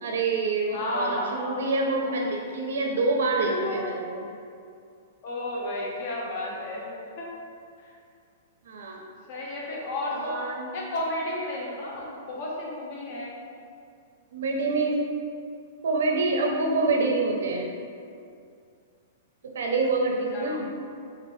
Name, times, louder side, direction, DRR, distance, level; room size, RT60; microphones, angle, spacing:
voice 1, 0.0-4.2 8.7-9.0 10.1-10.7 14.3-15.0 15.8-17.7 19.5-20.7, right 3 dB, 75° right, 0 dB, 0.4 m, -26 dB
voice 2, 0.7-1.7 2.0-2.4 3.4-3.9 5.2-7.3 7.8-7.9 9.3-10.4 10.7-13.3 20.3-20.7, left 1 dB, 40° left, -3 dB, 0.6 m, -33 dB
3.1 x 2.4 x 3.0 m, 2.4 s
hypercardioid pair, 165°, 0 cm